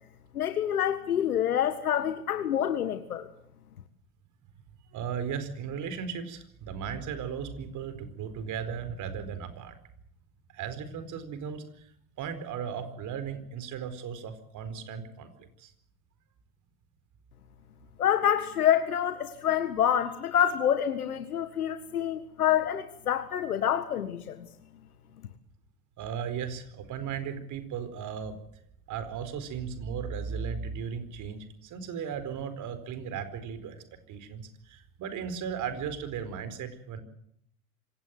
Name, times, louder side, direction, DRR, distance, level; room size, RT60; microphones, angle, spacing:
voice 1, 0.3-3.3 18.0-24.5, left 10 dB, 80° left, 9 dB, 1.8 m, -27 dB
voice 2, 4.9-9.8 10.5-11.9 12.2-15.7 26.0-28.3 28.9-33.8 34.1-37.0, right 7 dB, 45° right, 12 dB, 4.6 m, -36 dB
26.0 x 17.5 x 7.8 m, 0.71 s
hypercardioid pair, 85°, 43 cm